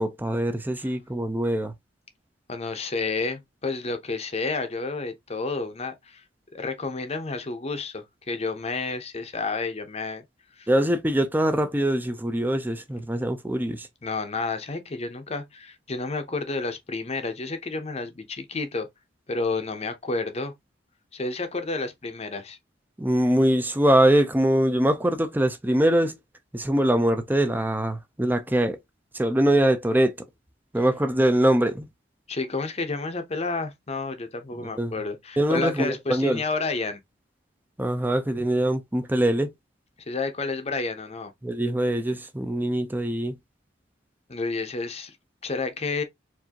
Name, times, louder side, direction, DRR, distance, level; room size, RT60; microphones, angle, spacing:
voice 1, 0.0-1.7 10.7-13.9 23.0-26.2 26.5-28.8 29.1-30.2 30.7-31.9 34.6-35.0 35.4-36.4 37.8-39.5 41.4-43.3, right 1 dB, 10° right, 0.5 m, -23 dB
voice 2, 2.5-6.2 6.5-10.2 10.6-10.7 14.0-18.9 19.3-20.5 21.1-22.6 32.3-37.0 40.1-41.3 44.3-45.2 45.4-46.0, left 3 dB, 35° left, 0.8 m, -30 dB
4.6 x 2.7 x 2.8 m
head